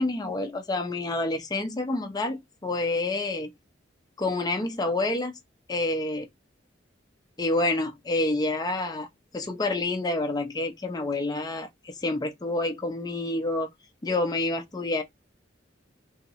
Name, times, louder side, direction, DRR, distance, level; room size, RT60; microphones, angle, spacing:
voice 1, 0.0-3.5 4.2-5.3 5.7-6.2 7.4-9.1 9.3-13.7 14.0-15.0, left 2 dB, 20° left, 0.5 m, -28 dB
2.9 x 2.8 x 2.4 m
head